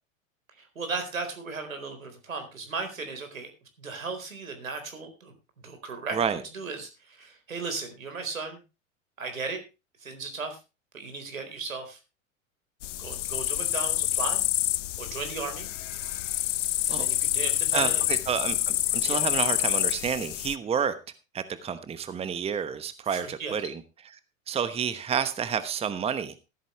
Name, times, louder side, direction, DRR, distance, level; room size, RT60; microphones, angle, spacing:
voice 1, 0.6-3.5 3.8-5.3 5.6-6.2 6.5-8.6 9.2-9.6 10.0-10.6 10.9-12.0 13.0-14.4 15.0-15.7 16.9-18.0 19.1-19.2 23.1-23.6, right 4 dB, 80° right, 7 dB, 4.3 m, -36 dB
sound 1, 12.8-20.6, left 14 dB, 65° left, 0.7 m, -27 dB
voice 2, 17.7-20.9 21.3-23.8 24.5-26.3, right 7 dB, 15° right, 13 dB, 1.1 m, -29 dB
14.5 x 13.0 x 3.2 m, 0.28 s
figure-of-eight pair, 90°, 40 cm